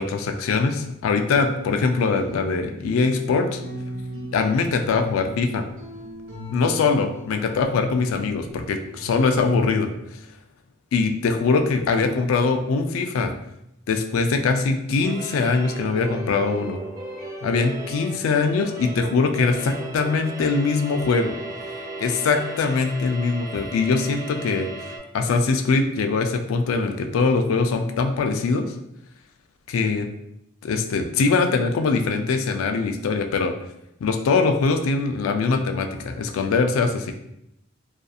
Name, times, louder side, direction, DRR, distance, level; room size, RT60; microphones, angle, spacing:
voice 1, 0.0-3.6 4.3-5.6 6.5-9.9 10.9-13.3 13.9-16.8 17.4-21.3 22.0-24.7 25.1-28.7 29.7-30.1 30.6-33.5 34.0-37.1, left 4 dB, 90° left, 6 dB, 0.3 m, -22 dB
sound 1, 1.4-9.6, left 1 dB, 85° right, 0.7 m, -39 dB
sound 2, 15.0-25.0, right 2 dB, 15° right, 0.3 m, -36 dB
2.6 x 2.4 x 2.3 m, 0.80 s
head